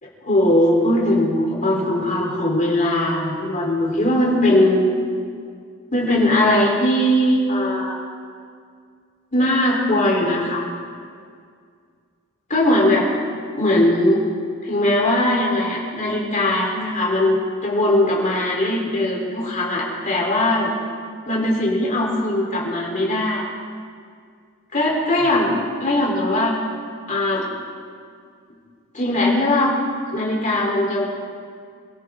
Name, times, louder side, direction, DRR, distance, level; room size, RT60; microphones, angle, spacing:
voice 1, 0.0-4.8 5.9-8.0 9.3-10.7 12.5-13.1 13.6-14.2 14.6-20.7 21.3-23.4 24.7-26.5 27.1-27.5 28.9-29.8 30.1-31.1, left 1 dB, 35° left, -3 dB, 3.9 m, -20 dB
26.5 x 13.5 x 3.8 m, 2.2 s
head